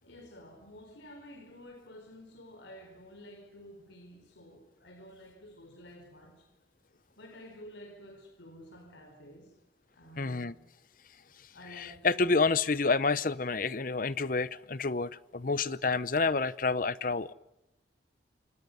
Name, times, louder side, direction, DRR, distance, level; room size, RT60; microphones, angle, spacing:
voice 1, 0.0-6.5 7.2-9.6 9.9-10.6 11.5-12.4, equal, 80° left, 4.7 m, -51 dB
voice 2, 10.2-10.5 11.8-17.3, left 4 dB, 50° left, 0.8 m, -29 dB
28.5 x 26.0 x 5.5 m
head